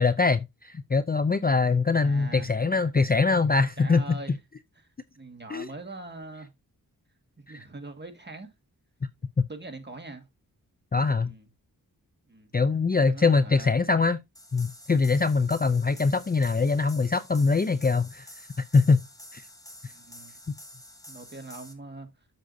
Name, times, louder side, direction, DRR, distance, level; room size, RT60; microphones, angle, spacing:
voice 1, 0.0-4.0 5.5-5.7 7.5-7.6 9.4-9.5 10.9-11.3 12.5-14.2 14.5-18.3 18.6-19.0 19.3-19.4, left 4 dB, 25° left, 0.5 m, -23 dB
voice 2, 2.0-2.5 3.8-4.4 4.8-4.9 5.2-6.5 7.4-8.5 9.5-10.3 11.2-11.5 12.3-12.5 13.1-13.9 19.9-20.3 21.1-22.1, right 2 dB, 25° right, 1.9 m, -42 dB
sound 1, 14.3-21.7, left 1 dB, 10° left, 1.9 m, -48 dB
7.7 x 7.5 x 2.7 m
cardioid pair, 60°, 38 cm